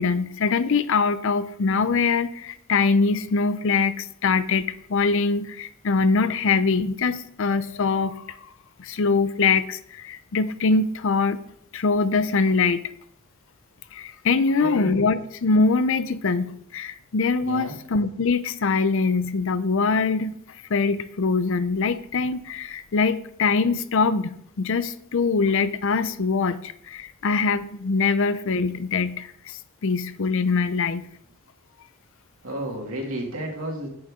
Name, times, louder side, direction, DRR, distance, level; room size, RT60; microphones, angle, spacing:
voice 1, 0.0-8.2 8.8-11.4 11.7-12.9 13.9-20.4 20.7-31.1, left 4 dB, 65° left, 14 dB, 0.5 m, -23 dB
voice 2, 14.6-15.1 17.4-17.7 32.4-33.9, right 1 dB, 75° right, -1 dB, 2.5 m, -32 dB
10.5 x 7.0 x 3.7 m, 0.69 s
head